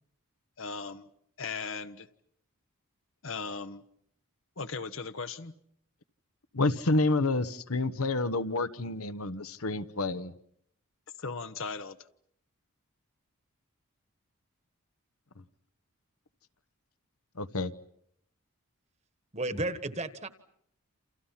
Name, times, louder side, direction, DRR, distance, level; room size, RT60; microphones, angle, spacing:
voice 1, 0.6-1.1 1.4-2.1 3.2-3.8 4.6-5.5 11.2-12.0, left 4 dB, 60° left, 1.0 m, -37 dB
voice 2, 6.5-10.3 17.4-17.7, left 2 dB, 80° left, 1.1 m, -29 dB
voice 3, 19.3-20.3, right 2 dB, 30° right, 1.3 m, -33 dB
29.0 x 28.0 x 5.8 m
head